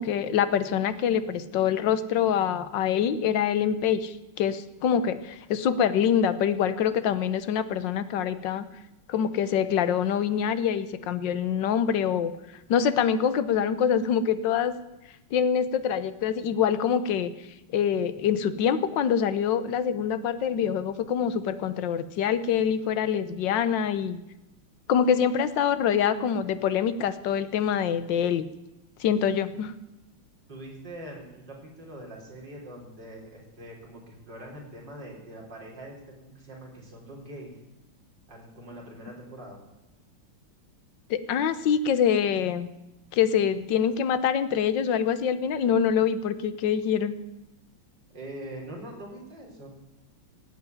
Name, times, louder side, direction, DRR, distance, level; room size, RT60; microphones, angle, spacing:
voice 1, 0.0-8.7 9.1-12.3 12.7-14.7 15.3-17.3 17.7-24.2 24.9-28.4 29.0-29.8 41.1-42.7 43.1-47.1, left 8 dB, 65° left, 12 dB, 1.4 m, -25 dB
voice 2, 30.5-37.6 38.3-39.6 48.1-49.7, right 1 dB, 55° right, -2 dB, 4.7 m, -43 dB
16.5 x 8.1 x 9.3 m, 0.96 s
omnidirectional pair, 2.4 m